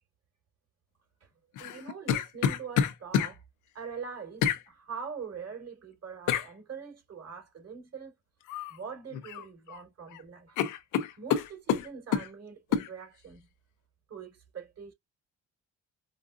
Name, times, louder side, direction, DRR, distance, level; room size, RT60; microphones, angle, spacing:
sound 1, 1.6-3.3 4.4-4.6 6.3-6.5 8.5-8.8 9.1-9.8 10.1-10.2 10.6-12.3 12.7-12.9, left 9 dB, 85° left, 0.8 m, -28 dB
voice 1, 1.6-3.4 3.7-8.1 8.7-10.6 11.1-13.5 14.1-14.9, right 6 dB, 55° right, 3.3 m, -43 dB
5.0 x 2.4 x 2.5 m
cardioid pair, 90°, 30 cm